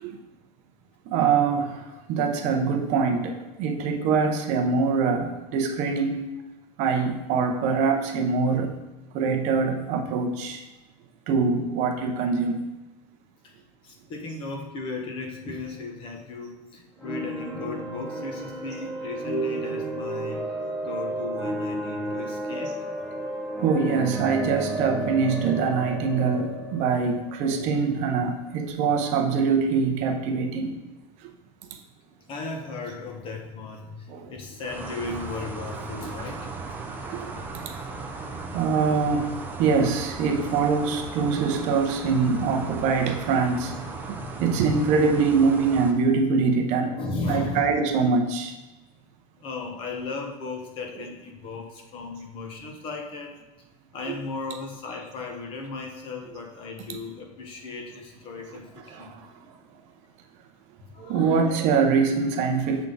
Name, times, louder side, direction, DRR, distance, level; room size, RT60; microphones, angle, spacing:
voice 1, 1.1-6.2 6.8-8.7 9.1-10.6 11.3-12.6 23.6-30.8 34.1-34.3 37.0-37.3 38.5-39.3 39.6-43.7 44.4-46.9 47.3-48.5 54.1-54.2 58.9-59.3 61.0-62.9, right 5 dB, 45° right, 4 dB, 0.7 m, -24 dB
voice 2, 13.8-20.4 20.8-22.9 32.3-36.5 44.1-44.4 46.8-47.7 49.4-53.4 53.9-59.1 60.9-61.4, left 3 dB, 35° left, 2 dB, 0.9 m, -36 dB
sound 1, 17.0-28.7, right 1 dB, 10° left, 0.9 m, -32 dB
sound 2, 34.6-45.9, right 3 dB, 10° right, 0.5 m, -37 dB
7.1 x 3.6 x 3.9 m, 1.0 s
cardioid pair, 165°, 16 cm